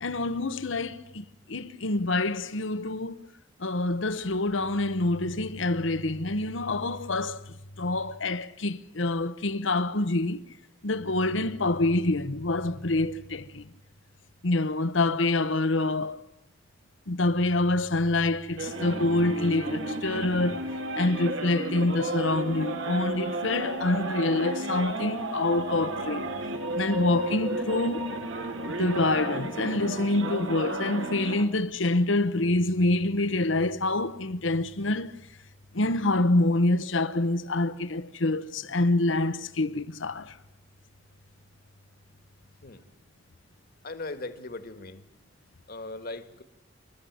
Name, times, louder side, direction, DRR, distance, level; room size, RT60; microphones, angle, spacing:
voice 1, 0.0-3.2 3.6-7.4 7.8-10.4 10.8-13.6 14.4-16.2 17.1-20.6 21.0-26.3 26.7-28.1 28.8-35.1 35.7-40.3, left 2 dB, 85° left, 1.1 m, -26 dB
sound 1, 18.6-31.4, right 1 dB, 75° right, 2.3 m, -33 dB
voice 2, 43.8-45.0 45.7-46.4, left 2 dB, 55° left, 1.7 m, -38 dB
27.5 x 13.0 x 9.5 m
head